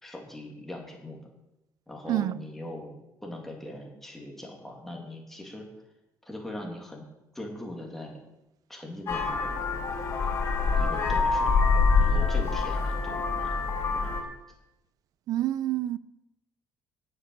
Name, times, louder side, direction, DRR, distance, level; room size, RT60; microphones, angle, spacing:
voice 1, 0.0-1.2 1.9-2.9 3.2-5.7 6.2-7.1 7.3-8.2 8.7-9.8 10.8-11.6 12.0-13.5 13.9-14.2, left 1 dB, 5° left, 2.6 m, -41 dB
Vehicle horn car horn honking, 9.1-14.2, left 4 dB, 40° left, 3.7 m, -25 dB
voice 2, 15.3-16.0, right 13 dB, 55° right, 0.5 m, -27 dB
9.3 x 7.8 x 8.7 m
cardioid pair, 155°, 7 cm